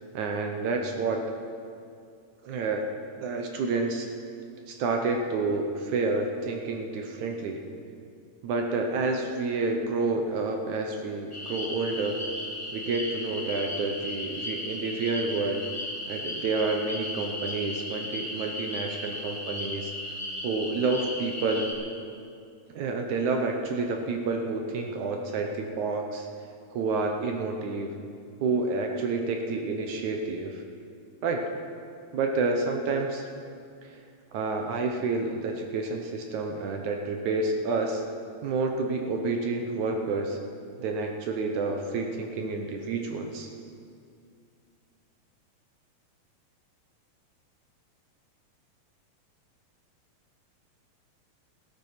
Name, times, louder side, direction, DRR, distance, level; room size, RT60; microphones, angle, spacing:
voice 1, 0.1-1.2 2.4-2.9 3.2-4.1 4.7-7.6 8.4-12.2 12.7-15.7 16.1-19.9 20.4-21.7 22.7-26.3 26.7-27.9 28.4-30.6 31.2-31.4 32.1-33.2 33.8-33.9 34.3-38.0 38.4-40.4 40.8-43.5, right 3 dB, 70° right, 3 dB, 2.1 m, -29 dB
sound 1, 11.3-21.7, left 1 dB, 15° left, 1.2 m, -36 dB
16.0 x 13.0 x 5.8 m, 2.4 s
omnidirectional pair, 4.0 m